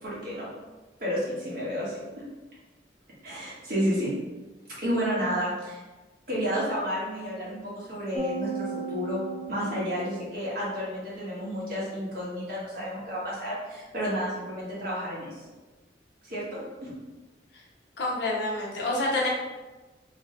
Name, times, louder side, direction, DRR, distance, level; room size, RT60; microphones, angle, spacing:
voice 1, 0.0-0.5 1.0-2.0 3.2-4.1 4.8-5.8 6.3-9.2 9.5-15.4 16.2-16.9, equal, 50° right, -7 dB, 1.4 m, -31 dB
sound 1, 8.1-10.7, right 4 dB, 20° right, 0.3 m, -36 dB
voice 2, 18.0-19.3, left 2 dB, 80° left, -3 dB, 0.9 m, -27 dB
3.2 x 2.8 x 3.3 m, 1.2 s
head